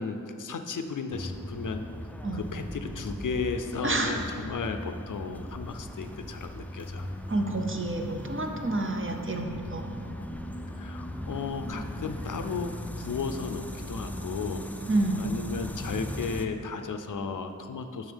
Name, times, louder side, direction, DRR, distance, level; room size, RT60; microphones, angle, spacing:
voice 1, 0.0-1.9 2.3-7.0 10.7-14.7 15.2-18.1, left 4 dB, 65° left, 7 dB, 0.5 m, -34 dB
sound 1, 1.1-16.4, equal, 5° left, 0.4 m, -38 dB
voice 2, 3.8-4.2 7.3-9.9 14.9-15.3, right 2 dB, 40° right, 3 dB, 0.7 m, -29 dB
7.1 x 6.0 x 3.5 m, 2.5 s
cardioid pair, 45°, 33 cm